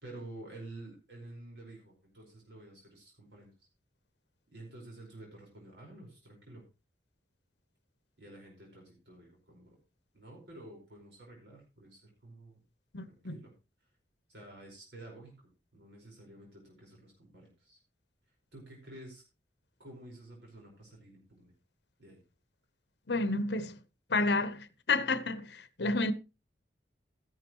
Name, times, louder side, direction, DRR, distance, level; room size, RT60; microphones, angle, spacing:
voice 1, 0.0-3.7 4.5-6.6 8.2-9.8 10.1-12.6 13.1-13.5 14.3-17.8 18.5-19.2 19.8-21.5 22.0-22.2, right 1 dB, 75° right, 4.9 m, -50 dB
voice 2, 12.9-13.4 23.1-23.8 24.1-26.1, left 3 dB, 70° left, 0.9 m, -30 dB
13.5 x 11.0 x 3.1 m
head